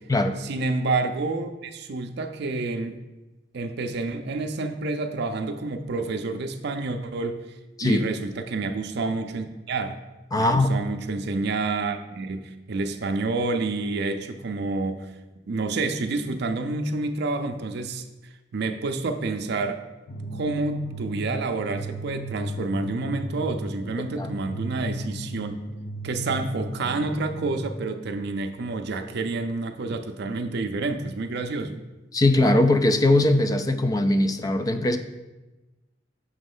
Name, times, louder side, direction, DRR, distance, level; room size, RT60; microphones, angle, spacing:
voice 1, 0.4-3.0 3.5-7.4 7.8-10.0 10.4-15.1 15.5-18.0 18.5-19.8 20.3-25.6 26.0-31.8, right 3 dB, 60° right, 6 dB, 0.5 m, -29 dB
voice 2, 10.3-10.8 24.2-24.3 32.1-35.0, left 1 dB, 20° left, 9 dB, 0.3 m, -20 dB
sound 1, 20.1-27.7, equal, 70° left, 0.9 m, -35 dB
6.2 x 3.2 x 5.4 m, 1.1 s
head